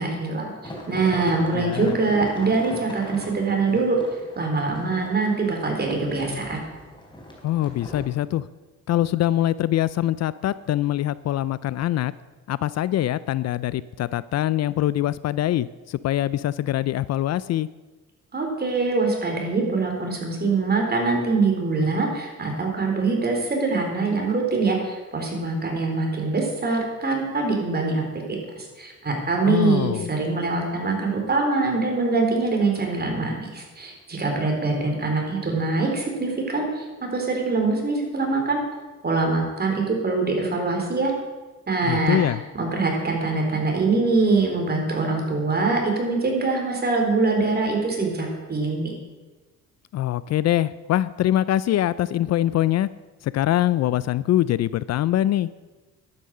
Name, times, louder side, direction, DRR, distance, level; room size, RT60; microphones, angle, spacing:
voice 1, 0.0-4.0 4.4-6.6 18.3-28.4 28.8-38.6 39.0-41.1 41.7-42.2 42.6-48.9, right 3 dB, 30° right, 1 dB, 4.1 m, -24 dB
sound 1, 0.6-8.1, left 1 dB, 15° left, 3.4 m, -39 dB
voice 2, 1.5-1.9 7.4-8.5 8.9-12.1 12.5-17.7 29.5-30.1 41.8-42.4 49.9-52.9 53.2-55.5, left 13 dB, 60° left, 18 dB, 0.4 m, -23 dB
11.5 x 9.5 x 6.6 m, 1.2 s
cardioid pair, 90°, 30 cm